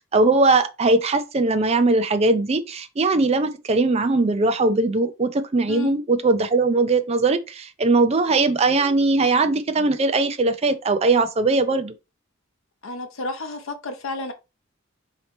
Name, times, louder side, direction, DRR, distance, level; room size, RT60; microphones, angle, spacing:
voice 1, 0.1-11.9, right 3 dB, 30° right, 0.5 m, -20 dB
voice 2, 12.8-14.3, left 3 dB, 75° left, 0.7 m, -31 dB
4.1 x 2.8 x 3.2 m
head